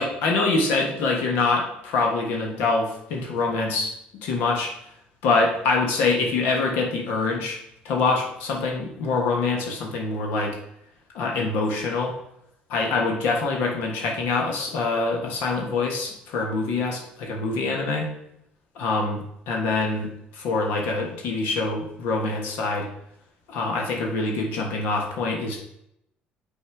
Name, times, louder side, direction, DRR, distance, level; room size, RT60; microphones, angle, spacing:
voice 1, 0.0-3.9 4.2-4.7 5.2-7.6 7.8-10.6 11.1-12.1 12.7-18.1 18.7-22.9 23.5-25.6, left 3 dB, 85° left, 0 dB, 1.3 m, -25 dB
5.7 x 4.3 x 4.7 m, 0.76 s
cardioid pair, 105°, 3 cm